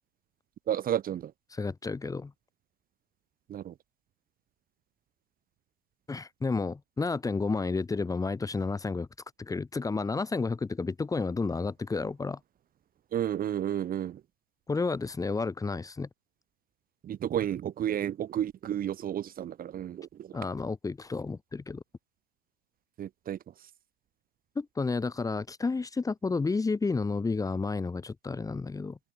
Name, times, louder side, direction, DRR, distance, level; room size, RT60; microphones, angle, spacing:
voice 1, 0.7-1.3 3.5-3.7 13.1-14.2 17.0-20.4 23.0-23.4, right 10 dB, 20° right, 4.9 m, -32 dB
voice 2, 1.5-2.3 6.1-9.1 9.4-12.4 14.7-16.1 20.3-21.8 24.5-29.0, left 4 dB, 5° left, 5.0 m, -31 dB
hypercardioid pair, 135°, 45 cm